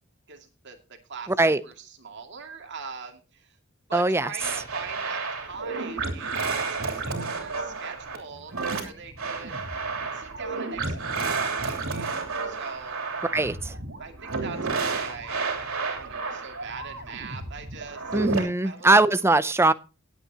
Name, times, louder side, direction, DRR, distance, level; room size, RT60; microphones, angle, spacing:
voice 1, 0.3-0.8 1.1-3.6 3.9-9.6 10.1-13.0 13.6-18.9, right 5 dB, 55° right, 4 dB, 2.3 m, -42 dB
voice 2, 1.3-1.6 3.9-4.3 13.3-13.7 18.1-19.7, right 2 dB, 10° right, 15 dB, 0.5 m, -21 dB
sound 1, 4.4-18.4, right 4 dB, 75° right, 3.1 m, -31 dB
19.0 x 8.3 x 2.9 m, 0.30 s
head